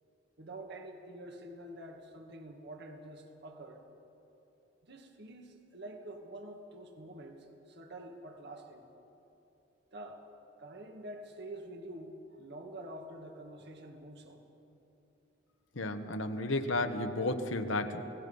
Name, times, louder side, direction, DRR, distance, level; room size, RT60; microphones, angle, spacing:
voice 1, 0.4-3.9 4.8-8.8 9.9-10.3 10.6-14.4, right 1 dB, 60° right, 3 dB, 1.7 m, -47 dB
voice 2, 15.7-18.0, left 2 dB, 85° left, 6 dB, 1.2 m, -32 dB
28.5 x 17.5 x 5.5 m, 3.0 s
head